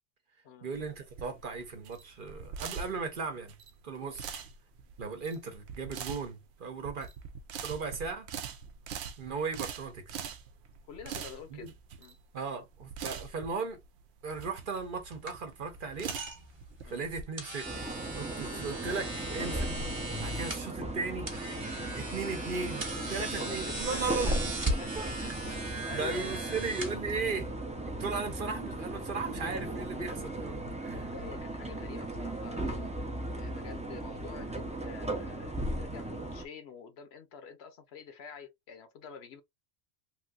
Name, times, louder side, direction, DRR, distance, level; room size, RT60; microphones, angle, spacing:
voice 1, 0.6-3.6 3.8-4.3 5.0-7.1 7.6-8.3 9.2-10.0 11.5-11.7 12.3-13.8 14.2-16.1 16.8-17.8 18.1-19.7 20.2-21.3 21.9-24.5 25.0-25.1 25.9-27.5 27.9-31.1, right 4 dB, 55° right, 0.9 m, -37 dB
sound 1, 0.7-17.2, right 7 dB, 75° right, 0.8 m, -43 dB
voice 2, 10.9-11.7 12.0-12.2 16.8-17.0 23.0-24.4 24.8-24.9 25.2-25.3 25.6-26.6 31.1-32.9 33.4-39.4, left 6 dB, 70° left, 0.9 m, -47 dB
sound 2, 14.3-27.6, right 2 dB, 25° right, 0.8 m, -39 dB
sound 3, 17.6-36.4, right 1 dB, 10° right, 0.3 m, -37 dB
3.2 x 2.7 x 2.3 m
omnidirectional pair, 1.1 m